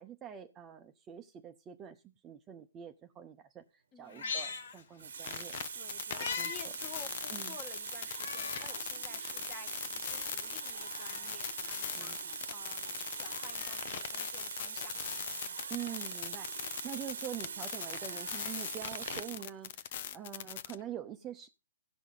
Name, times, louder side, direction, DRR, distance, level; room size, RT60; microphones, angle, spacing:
voice 1, 0.0-5.6 6.4-6.7 7.3-7.6 11.9-12.4 15.7-21.5, right 10 dB, 20° right, 0.7 m, -45 dB
voice 2, 3.9-4.3 5.7-15.2, left 5 dB, 25° left, 1.6 m, -52 dB
Meow, 4.0-5.4 5.7-6.6 7.0-7.1 8.1-8.8 9.3-9.4 10.4-11.4 12.9-13.9 15.3-16.1 17.6-19.2 20.5-20.6, left 5 dB, 70° left, 2.0 m, -44 dB
Water tap faucet, 4.2-4.4 5.0-19.5 20.4-20.6, right 6 dB, 80° right, 1.1 m, -43 dB
sound 1, 5.2-20.8, left 10 dB, 50° left, 0.7 m, -41 dB
17.0 x 5.6 x 3.8 m
hypercardioid pair, 155°, 0 cm